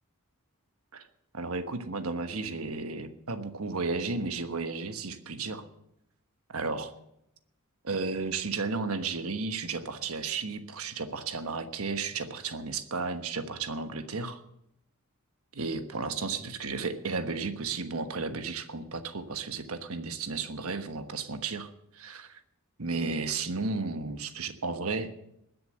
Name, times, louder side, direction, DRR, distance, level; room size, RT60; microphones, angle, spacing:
voice 1, 1.3-5.6 6.5-6.9 7.8-14.4 15.5-21.7 21.9-22.3 22.8-25.1, right 4 dB, 70° right, 8 dB, 1.3 m, -33 dB
20.5 x 6.9 x 7.8 m, 0.80 s
head